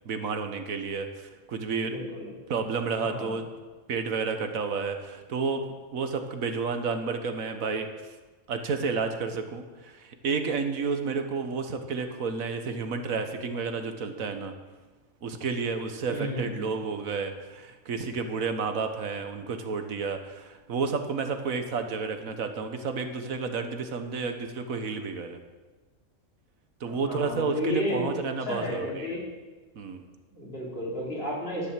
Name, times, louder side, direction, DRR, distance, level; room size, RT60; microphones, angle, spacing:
voice 1, 0.0-2.0 2.5-3.4 3.9-7.9 8.5-14.5 15.2-25.4 26.8-29.1 29.8-30.0, right 5 dB, 85° right, 7 dB, 1.6 m, -31 dB
voice 2, 1.8-2.3 3.1-3.4 16.1-16.7 26.9-28.1 28.5-29.2 30.3-31.7, left 1 dB, 45° left, -5 dB, 4.4 m, -32 dB
11.0 x 10.5 x 7.5 m, 1.3 s
omnidirectional pair, 1.4 m